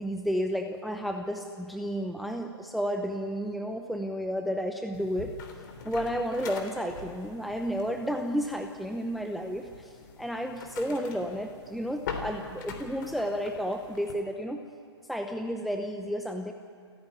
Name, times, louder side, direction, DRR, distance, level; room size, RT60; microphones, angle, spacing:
voice 1, 0.0-5.3 5.8-14.6 15.1-16.5, equal, ahead, 5 dB, 0.8 m, -32 dB
sound 1, 4.9-14.1, left 5 dB, 45° left, 3.4 m, -43 dB
29.5 x 10.5 x 9.2 m, 2.4 s
hypercardioid pair, 135°, 15 cm